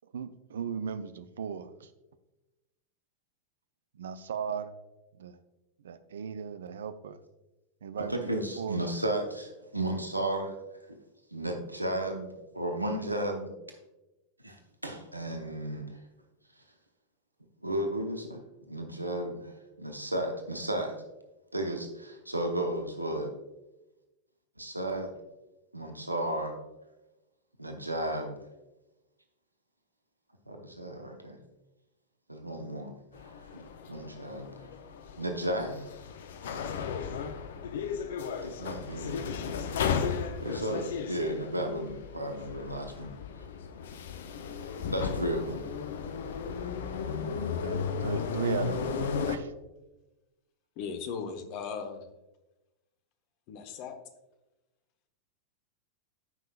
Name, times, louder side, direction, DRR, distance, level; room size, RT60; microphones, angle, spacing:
voice 1, 0.1-1.9 3.9-4.7 5.2-5.4 5.8-7.2 7.8-8.9 47.6-49.5, right 7 dB, 65° right, 12 dB, 0.5 m, -37 dB
voice 2, 8.0-10.6 11.3-13.5 14.4-16.0 17.6-18.4 18.7-21.0 21.5-23.3 24.6-25.1 25.7-26.6 27.6-28.4 30.5-31.4 32.3-34.7 35.2-35.9 38.4-39.2 40.4-43.1 44.8-45.7, right 1 dB, 85° right, 4 dB, 0.8 m, -34 dB
sound 1, 33.1-49.4, left 6 dB, 60° left, 0.6 m, -35 dB
voice 3, 50.8-52.1 53.5-53.9, left 6 dB, 45° left, 7 dB, 1.0 m, -37 dB
13.5 x 5.6 x 2.3 m, 1.0 s
figure-of-eight pair, 90°, 0 cm